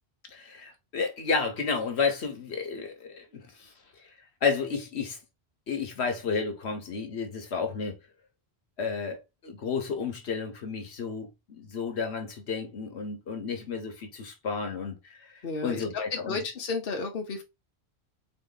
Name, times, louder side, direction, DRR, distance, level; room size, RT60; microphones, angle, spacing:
voice 1, 0.3-4.1 4.4-5.2 5.7-8.0 8.8-16.4, left 5 dB, 80° left, 1.3 m, -32 dB
voice 2, 15.4-17.4, left 4 dB, 60° left, 1.1 m, -33 dB
3.9 x 3.3 x 3.9 m
omnidirectional pair, 1.1 m